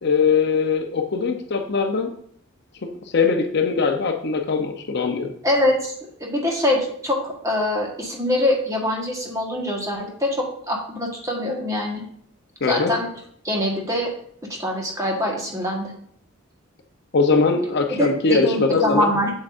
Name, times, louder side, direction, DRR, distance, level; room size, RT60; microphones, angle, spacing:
voice 1, 0.0-2.1 2.8-5.3 12.6-12.9 17.1-19.1, left 4 dB, 55° left, 5 dB, 0.7 m, -21 dB
voice 2, 5.4-5.9 6.2-12.0 12.7-13.1 13.4-14.1 14.4-15.9 17.9-19.3, left 1 dB, 15° right, -1 dB, 1.4 m, -24 dB
7.8 x 7.4 x 2.6 m, 0.63 s
head